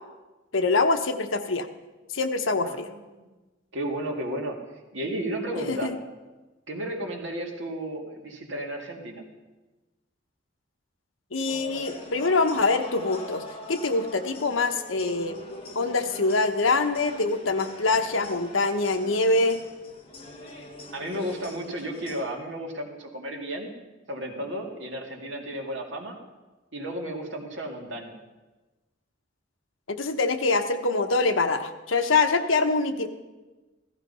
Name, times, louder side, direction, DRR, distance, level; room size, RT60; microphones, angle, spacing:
voice 1, 0.5-1.7 2.1-2.9 5.7-6.0 11.3-13.4 13.7-15.4 15.7-19.6 29.9-33.1, left 3 dB, 85° left, 7 dB, 1.1 m, -24 dB
voice 2, 2.6-3.3 3.7-4.6 4.9-6.0 6.7-9.2 20.9-23.7 24.1-26.2 26.7-28.1, right 1 dB, 70° right, 1 dB, 2.3 m, -33 dB
sound 1, 11.5-22.2, left 1 dB, 30° left, 1.9 m, -42 dB
15.5 x 14.0 x 5.5 m, 1.2 s
head